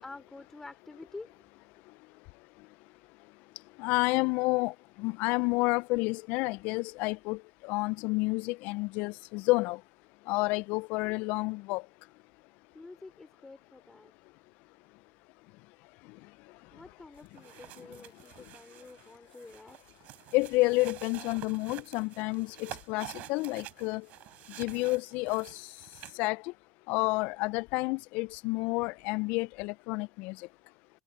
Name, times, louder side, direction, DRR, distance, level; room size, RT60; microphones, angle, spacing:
voice 1, 0.0-1.3 12.7-14.1 16.7-19.8, left 3 dB, 10° left, 4.2 m, -48 dB
voice 2, 3.8-9.8 10.3-11.8 20.3-24.0 24.6-25.8 26.1-26.5 26.9-30.5, left 24 dB, 50° left, 0.4 m, -30 dB
sound 1, 17.2-26.3, right 17 dB, 45° right, 6.1 m, -48 dB
hypercardioid pair, 110°, 3 cm